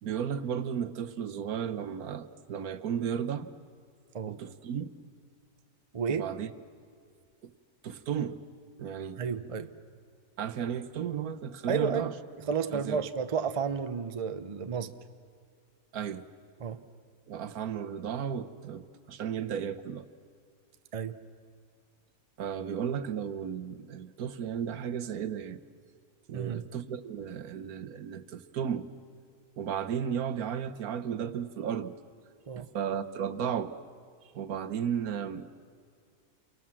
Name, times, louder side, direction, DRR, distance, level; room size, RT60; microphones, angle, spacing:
voice 1, 0.0-3.5 4.3-4.9 6.1-6.5 7.4-7.5 7.8-8.4 8.8-9.2 10.4-12.1 12.7-13.0 15.9-16.3 17.3-20.0 22.4-25.6 26.3-28.9 29.6-31.9 32.6-33.7 34.3-35.6, right 8 dB, 75° right, 1.4 m, -34 dB
voice 2, 5.9-6.3 9.2-9.7 11.7-12.1 12.4-14.9 16.6-16.8 20.9-21.2 26.3-26.6 32.5-32.7, right 6 dB, 30° right, 0.7 m, -32 dB
29.5 x 24.5 x 7.5 m
omnidirectional pair, 1.5 m